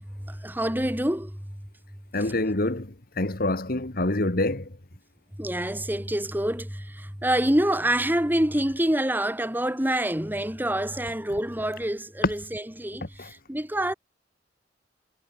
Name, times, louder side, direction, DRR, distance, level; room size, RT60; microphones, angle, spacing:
voice 1, 0.0-1.5 5.4-13.9, right 1 dB, 10° right, 2.8 m, -27 dB
voice 2, 2.1-4.7 13.2-13.3, left 2 dB, 55° left, 1.9 m, -26 dB
head